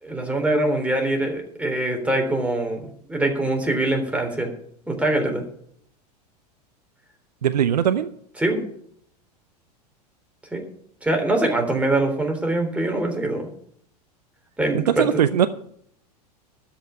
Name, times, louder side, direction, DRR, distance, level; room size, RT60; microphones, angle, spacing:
voice 1, 0.0-4.5 4.9-5.4 8.4-8.6 10.5-10.6 11.0-13.5 14.6-15.3, right 1 dB, 5° right, 2 dB, 3.5 m, -23 dB
voice 2, 7.4-8.1 14.7-15.5, right 9 dB, 80° right, 12 dB, 0.6 m, -20 dB
12.5 x 5.8 x 8.9 m, 0.67 s
hypercardioid pair, 90°, 21 cm